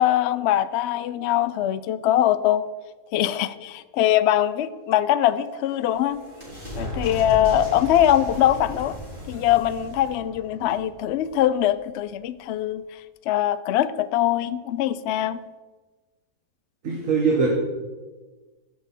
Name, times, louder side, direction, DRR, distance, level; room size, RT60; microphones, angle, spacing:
voice 1, 0.0-2.6 3.1-6.2 6.8-9.0 9.3-12.8 13.3-15.4, left 12 dB, 75° left, 13 dB, 0.6 m, -22 dB
sound 1, 5.3-11.7, left 1 dB, 30° right, 4.1 m, -36 dB
voice 2, 16.8-17.5, right 5 dB, 55° right, -1 dB, 1.6 m, -21 dB
15.5 x 6.0 x 4.2 m, 1.3 s
omnidirectional pair, 1.7 m